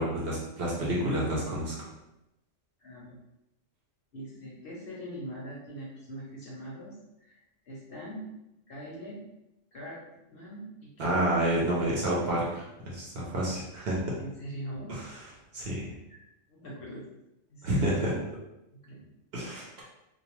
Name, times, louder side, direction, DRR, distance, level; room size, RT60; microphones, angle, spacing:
voice 1, 0.0-1.9 11.0-14.2 14.9-15.0 15.5-15.9 17.6-18.1 19.3-19.7, right 1 dB, 60° right, -5 dB, 0.7 m, -29 dB
voice 2, 2.8-3.2 4.1-7.0 7.2-7.4 7.6-8.2 8.7-9.2 9.7-10.0 10.3-11.2 14.2-14.9 16.1-17.0 17.5-18.1 18.7-19.0, right 1 dB, 55° left, -5 dB, 0.7 m, -42 dB
2.3 x 2.1 x 3.0 m, 0.90 s
omnidirectional pair, 1.4 m